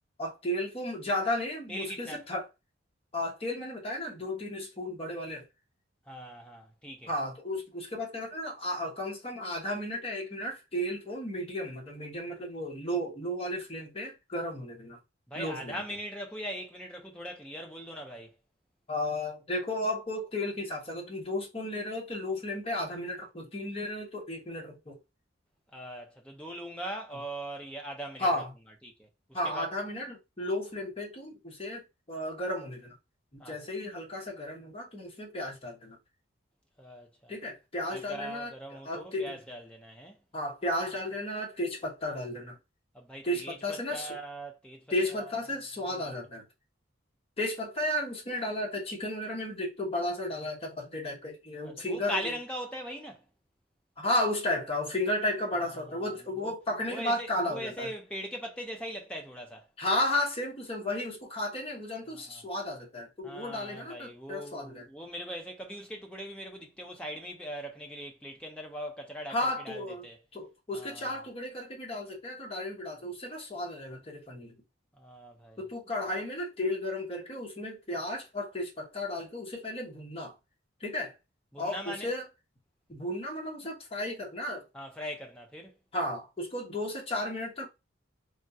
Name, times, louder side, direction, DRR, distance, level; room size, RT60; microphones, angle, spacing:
voice 1, 0.2-2.5 3.1-5.5 7.1-15.0 15.4-15.8 18.9-24.9 28.2-28.5 29.3-32.9 33.5-36.0 37.3-38.5 38.8-39.3 40.3-42.6 43.2-44.1 44.9-46.4 47.4-52.2 54.0-57.9 59.8-64.8 69.3-70.0 70.3-74.5 75.6-80.3 80.8-81.1 81.6-82.3 82.9-84.6 85.9-87.7, left 1 dB, 30° left, 1.0 m, -33 dB
voice 2, 1.7-2.2 6.1-7.1 15.3-18.3 25.7-28.3 28.8-29.7 33.4-33.6 36.8-37.3 37.9-40.2 42.9-45.3 45.8-46.2 51.6-53.2 55.6-56.5 56.9-59.7 62.1-62.4 63.2-70.2 70.7-71.2 75.0-75.6 81.5-82.1 84.7-85.7, equal, 5° left, 0.7 m, -41 dB
3.5 x 2.3 x 2.7 m
head